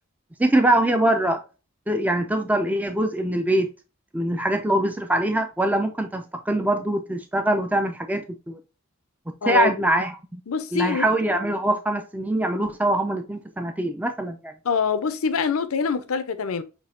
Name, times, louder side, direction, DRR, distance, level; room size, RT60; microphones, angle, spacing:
voice 1, 0.4-1.4 1.9-3.7 4.1-8.6 9.5-10.4 10.7-14.5, right 1 dB, 5° right, 0.4 m, -23 dB
voice 2, 9.4-9.7 10.5-11.1 14.6-16.6, left 5 dB, 85° left, 0.6 m, -24 dB
6.0 x 2.7 x 2.5 m
head